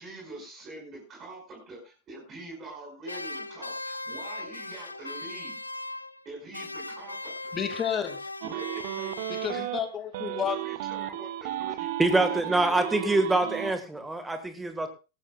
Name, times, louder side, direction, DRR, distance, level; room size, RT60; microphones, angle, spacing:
voice 1, 0.0-1.8 2.1-5.6 6.2-7.5 8.4-9.1 9.5-9.6 10.2-11.9 12.2-13.2 13.6-13.7, right 2 dB, 30° right, 0 dB, 5.6 m, -44 dB
sound 1, 3.0-6.3 6.5-9.9, left 2 dB, 80° left, 0.6 m, -39 dB
voice 2, 7.5-8.3 9.3-10.6, left 8 dB, 25° left, 9 dB, 2.2 m, -31 dB
sound 2, 8.4-9.8 10.1-13.7, right 14 dB, 50° right, 1.1 m, -34 dB
voice 3, 12.0-14.9, right 2 dB, 10° right, 8 dB, 1.7 m, -25 dB
18.0 x 15.0 x 2.4 m, 0.31 s
figure-of-eight pair, 90°, 0 cm